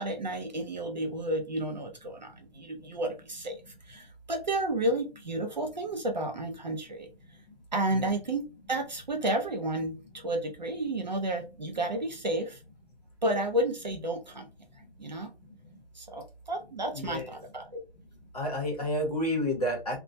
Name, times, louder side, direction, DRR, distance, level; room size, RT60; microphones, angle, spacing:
voice 1, 0.0-7.1 7.7-12.6 13.2-14.5 15.0-15.3 16.0-17.8, right 1 dB, 45° right, 3 dB, 0.5 m, -32 dB
voice 2, 16.9-17.3 18.3-20.0, left 1 dB, 40° left, 0 dB, 0.8 m, -30 dB
2.2 x 2.1 x 2.6 m, 0.29 s
hypercardioid pair, 170°, 32 cm